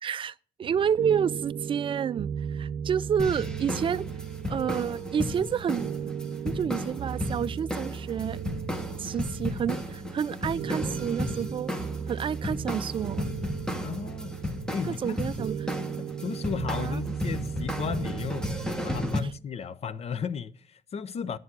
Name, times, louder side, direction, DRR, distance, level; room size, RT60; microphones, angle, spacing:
voice 1, 0.0-4.1 4.5-5.9 6.4-8.4 9.0-11.7 12.1-13.3 14.9-15.7 16.8-17.0, right 8 dB, 30° right, 0.4 m, -29 dB
sound 1, 0.6-19.3, right 8 dB, 55° right, 0.8 m, -36 dB
sound 2, 3.2-19.2, left 1 dB, 5° left, 1.1 m, -34 dB
voice 2, 13.8-14.4 14.7-15.2 16.0-21.4, left 6 dB, 40° left, 0.6 m, -35 dB
10.0 x 7.2 x 6.0 m
cardioid pair, 110°, 17 cm